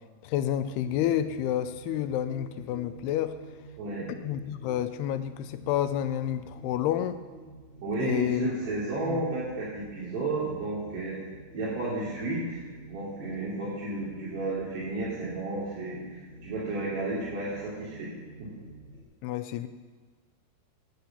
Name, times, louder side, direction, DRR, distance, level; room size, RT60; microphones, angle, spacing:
voice 1, 0.2-3.3 4.1-7.2 8.0-8.5 9.1-9.2 19.2-19.7, left 11 dB, 80° left, 10 dB, 2.6 m, -29 dB
sound 1, 0.6-19.0, right 2 dB, 20° left, 1.6 m, -49 dB
voice 2, 7.8-11.2 11.5-12.6 12.9-16.0 16.4-18.1 18.4-18.5, right 2 dB, 80° right, -9 dB, 4.9 m, -32 dB
9.1 x 9.0 x 8.4 m, 1.5 s
omnidirectional pair, 4.8 m